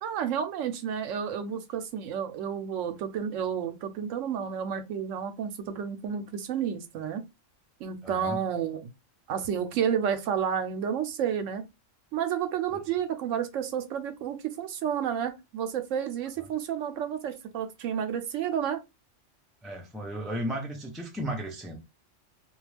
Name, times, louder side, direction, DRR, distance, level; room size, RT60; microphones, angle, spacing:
voice 1, 0.0-7.2 7.8-8.9 9.3-11.6 12.1-18.8, right 8 dB, 90° right, 1.0 m, -31 dB
voice 2, 8.0-8.4 19.6-21.8, equal, ahead, 0.3 m, -34 dB
2.3 x 2.3 x 3.2 m
omnidirectional pair, 1.3 m